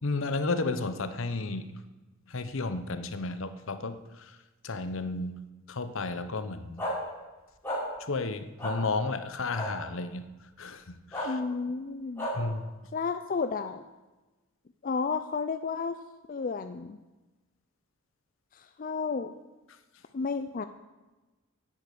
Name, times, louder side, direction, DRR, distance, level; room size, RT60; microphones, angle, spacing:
voice 1, 0.0-1.8 2.3-4.0 4.6-5.3 5.7-6.8 8.0-10.2 10.6-11.4 12.4-12.6, left 3 dB, 65° left, 11 dB, 0.9 m, -32 dB
sound 1, 6.8-6.9 7.6-7.8 8.6-8.7 9.5-9.7 11.1-11.3 12.2-12.3, left 1 dB, 10° left, 5.6 m, -32 dB
voice 2, 11.2-12.3 12.9-13.8 14.8-16.0 16.3-17.0 18.5-19.3 20.1-20.6, left 4 dB, 40° left, 10 dB, 0.4 m, -32 dB
10.5 x 8.4 x 8.5 m, 1.2 s
head